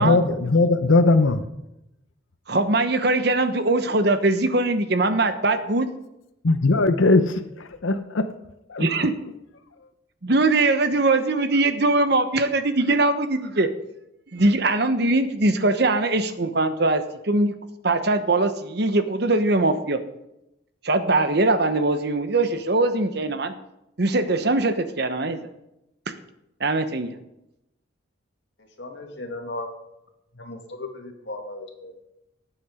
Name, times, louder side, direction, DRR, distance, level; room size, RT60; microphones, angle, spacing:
voice 1, 0.0-1.4 6.4-7.4 7.8-8.3 8.7-8.9, left 3 dB, 85° left, 10 dB, 0.8 m, -19 dB
voice 2, 2.5-5.9 8.8-9.1 10.2-13.7 14.3-17.6 17.8-20.0 20.8-23.5 24.0-25.4 26.1-26.2 26.6-27.1, right 2 dB, 55° right, 10 dB, 1.0 m, -21 dB
voice 3, 28.8-29.7 30.3-31.9, left 2 dB, 65° left, 2 dB, 2.3 m, -36 dB
18.0 x 7.9 x 5.0 m, 0.88 s
head